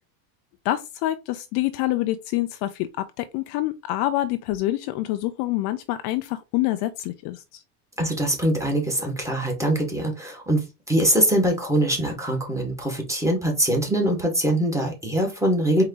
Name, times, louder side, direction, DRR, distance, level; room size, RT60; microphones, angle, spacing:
voice 1, 0.6-7.6, left 15 dB, 50° left, 0.6 m, -26 dB
voice 2, 8.0-15.8, right 1 dB, 5° right, 1.8 m, -23 dB
4.6 x 3.8 x 3.0 m
supercardioid pair, 120°, 49 cm